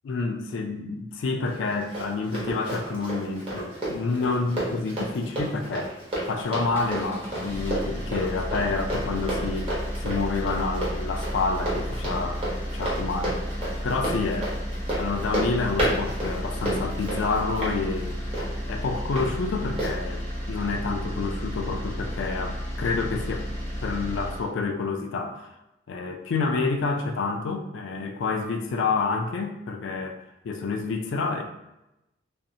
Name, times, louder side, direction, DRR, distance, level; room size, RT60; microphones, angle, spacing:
voice 1, 0.0-5.9 6.3-9.7 10.0-12.4 12.7-13.4 13.8-14.5 14.9-18.2 18.6-23.5 23.8-25.5 25.9-30.2 30.4-31.4, left 4 dB, 70° left, 5 dB, 0.3 m, -28 dB
Run, 1.5-19.3 19.8-19.9, right 1 dB, 30° right, 0.8 m, -32 dB
sound 1, 6.6-24.5, equal, 10° left, 0.5 m, -33 dB
2.6 x 2.0 x 2.7 m, 0.90 s
head